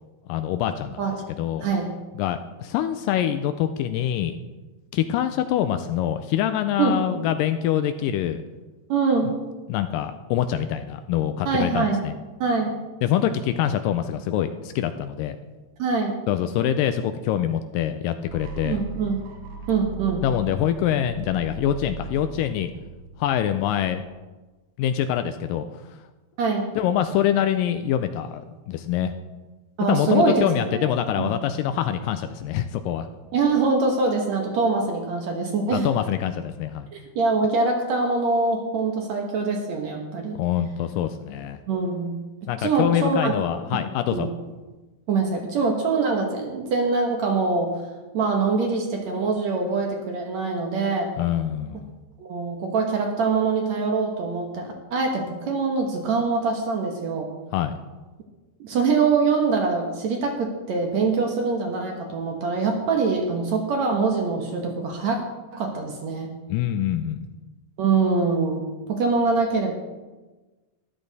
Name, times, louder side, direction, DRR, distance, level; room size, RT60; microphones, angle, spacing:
voice 1, 0.3-1.0 1.3-1.7 2.2-4.4 4.9-8.4 9.7-12.1 13.0-15.4 16.3-18.8 20.2-22.7 23.2-24.0 24.8-25.8 26.8-29.1 29.8-33.1 35.7-36.9 40.4-41.6 42.5-44.3 51.2-51.9 57.5-57.7 66.5-67.3, left 10 dB, 80° left, 9 dB, 2.1 m, -25 dB
voice 2, 6.8-7.2 8.9-9.3 11.5-12.0 12.4-12.7 15.8-16.2 18.6-19.2 19.7-20.2 26.4-26.7 29.8-30.9 31.2-31.3 33.3-35.9 36.9-40.4 41.7-42.1 42.6-43.4 44.1-44.3 45.1-47.8 48.1-51.1 52.2-57.3 58.6-65.2 65.5-66.3 67.8-69.8, right 4 dB, 60° right, 2 dB, 2.1 m, -24 dB
sound 1, 18.3-24.2, right 4 dB, 90° right, 3.1 m, -39 dB
13.5 x 11.5 x 4.0 m, 1.2 s
omnidirectional pair, 4.2 m